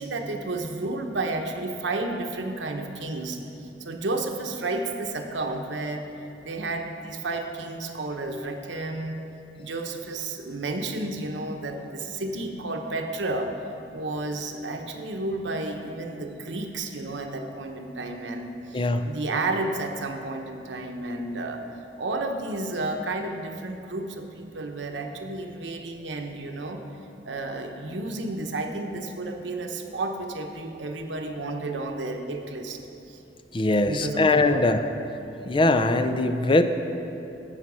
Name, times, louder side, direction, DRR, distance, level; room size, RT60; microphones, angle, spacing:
voice 1, 0.0-6.1 6.4-9.2 9.6-13.6 13.9-21.6 22.0-26.8 27.2-32.8 33.1-33.2 33.8-34.8, right 2 dB, 90° right, 4 dB, 1.0 m, -32 dB
voice 2, 18.7-19.1 33.5-34.8 35.4-36.6, left 2 dB, 30° left, 9 dB, 0.5 m, -21 dB
14.0 x 5.8 x 6.3 m, 2.9 s
head